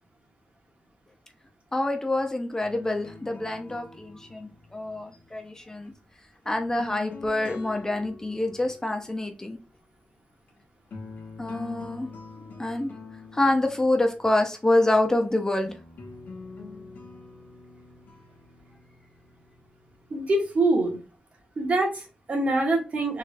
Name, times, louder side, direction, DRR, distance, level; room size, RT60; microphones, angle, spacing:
voice 1, 1.7-5.9 6.5-9.6 11.4-12.1 12.6-12.9 13.3-15.8, left 1 dB, 20° left, 4 dB, 0.5 m, -26 dB
sound 1, 2.6-5.9 6.5-8.7 10.5-10.6 10.9-14.6 15.6-20.7, left 4 dB, 75° left, 0.9 m, -45 dB
voice 2, 20.1-21.0 21.6-23.2, right 2 dB, 55° right, 0 dB, 1.2 m, -24 dB
3.5 x 2.4 x 3.2 m, 0.32 s
wide cardioid pair, 105°, 3 cm